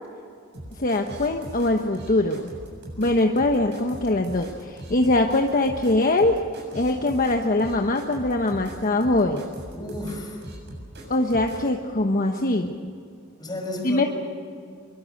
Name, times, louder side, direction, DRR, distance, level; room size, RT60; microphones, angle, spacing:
sound 1, 0.5-11.7, right 1 dB, 55° right, 7.5 m, -40 dB
voice 1, 0.8-2.5 3.0-6.4 6.7-9.5 11.1-12.9 13.8-14.1, left 2 dB, 40° left, 3 dB, 1.2 m, -22 dB
voice 2, 9.7-10.5 13.4-14.1, left 1 dB, 20° left, 1 dB, 5.8 m, -33 dB
24.5 x 23.5 x 6.7 m, 2.4 s
head